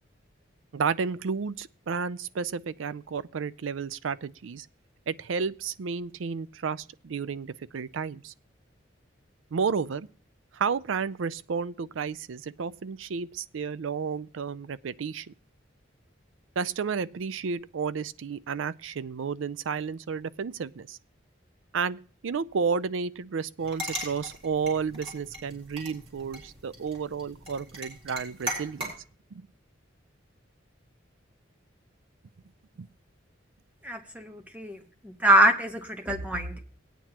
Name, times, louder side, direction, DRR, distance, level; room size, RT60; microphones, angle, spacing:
voice 1, 0.7-4.7 5.1-8.3 9.5-10.1 10.5-15.3 16.6-21.0 21.7-28.9 29.3-29.5 32.8-32.9, right 5 dB, 85° right, 0.4 m, -32 dB
sound 1, 23.6-29.0, equal, 30° right, 4.0 m, -39 dB
voice 2, 33.8-34.8 35.0-36.6, right 1 dB, 10° right, 1.2 m, -24 dB
18.0 x 9.2 x 2.9 m
head